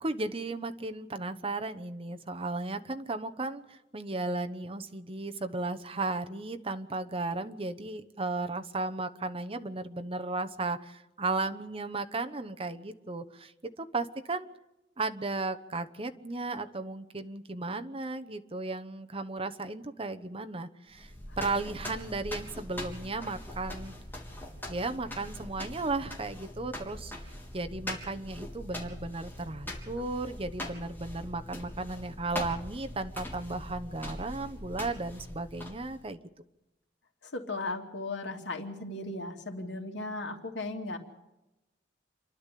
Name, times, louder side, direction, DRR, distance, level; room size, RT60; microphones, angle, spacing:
voice 1, 0.0-14.5 15.0-21.1 21.4-23.9 24.7-36.2, right 3 dB, 30° right, 9 dB, 1.1 m, -35 dB
sound 1, 20.9-36.0, left 1 dB, 10° left, 3.6 m, -42 dB
voice 2, 37.2-41.0, left 2 dB, 85° left, 3 dB, 2.7 m, -36 dB
28.0 x 12.0 x 8.5 m, 0.94 s
head